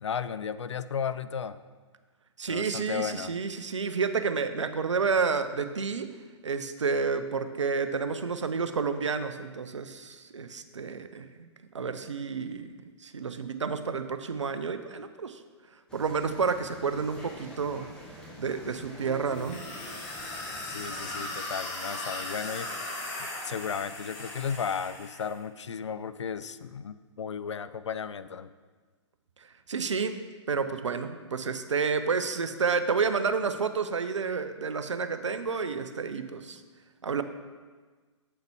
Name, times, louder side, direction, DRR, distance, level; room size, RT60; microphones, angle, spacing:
voice 1, 0.0-1.6 2.5-3.3 20.7-22.7 23.2-28.5, left 7 dB, 70° left, 13 dB, 0.4 m, -34 dB
voice 2, 2.4-6.1 6.4-11.5 11.7-12.8 13.0-15.4 15.9-17.9 18.4-19.6 29.7-30.2 30.5-36.6 37.0-37.2, right 5 dB, 75° right, 10 dB, 0.5 m, -30 dB
sound 1, 15.9-21.3, equal, 5° left, 1.1 m, -46 dB
sound 2, 19.3-25.3, left 2 dB, 35° left, 1.5 m, -38 dB
8.0 x 5.6 x 3.5 m, 1.4 s
figure-of-eight pair, 115°, 16 cm